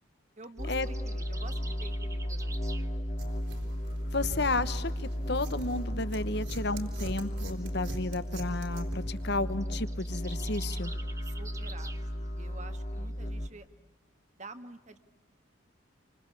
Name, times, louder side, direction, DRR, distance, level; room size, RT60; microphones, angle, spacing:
voice 1, 0.4-2.9 11.2-13.7 14.4-15.0, right 3 dB, 35° right, 9 dB, 1.5 m, -49 dB
sound 1, 0.6-13.5, equal, 35° left, 1.9 m, -34 dB
sound 2, 0.6-2.9 9.5-12.1, right 4 dB, 15° right, 0.9 m, -48 dB
sound 3, 3.2-9.6, right 1 dB, 65° right, 4.4 m, -46 dB
voice 2, 4.1-10.9, left 2 dB, 55° left, 13 dB, 1.1 m, -32 dB
28.0 x 25.0 x 8.4 m, 1.2 s
head